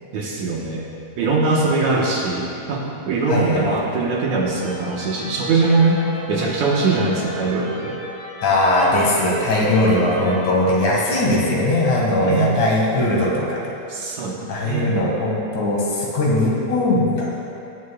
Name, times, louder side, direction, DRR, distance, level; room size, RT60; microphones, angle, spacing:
voice 1, 0.1-0.9 1.2-6.0 6.3-8.0 12.2-12.6 13.9-14.4 14.6-14.9, right 3 dB, 70° right, -3 dB, 2.3 m, -21 dB
voice 2, 3.3-3.8 8.4-13.6 14.5-17.3, left 1 dB, 65° left, -3 dB, 3.0 m, -19 dB
sound 1, 4.4-11.4, equal, 50° left, 2.1 m, -37 dB
18.5 x 10.5 x 2.3 m, 2.7 s
omnidirectional pair, 3.9 m